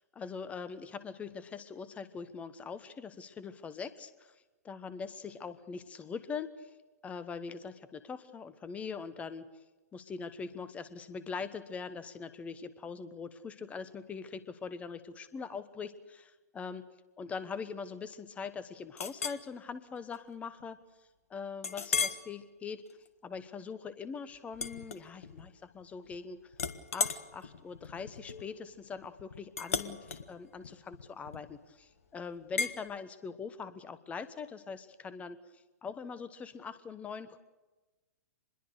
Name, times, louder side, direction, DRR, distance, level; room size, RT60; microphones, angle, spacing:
voice 1, 0.0-6.7 7.0-9.4 9.9-16.8 17.2-20.8 21.3-22.8 23.2-26.5 26.9-37.4, left 5 dB, 15° left, 14 dB, 1.2 m, -42 dB
Chink clink, 19.0-19.4 20.0-20.2 20.6-20.7 21.6-22.3 22.8-23.1 24.5-25.5 25.8-26.2 26.5-31.7 32.6-32.8, left 5 dB, 55° left, 1.7 m, -36 dB
26.0 x 21.5 x 6.7 m, 1.1 s
figure-of-eight pair, 110°, 9 cm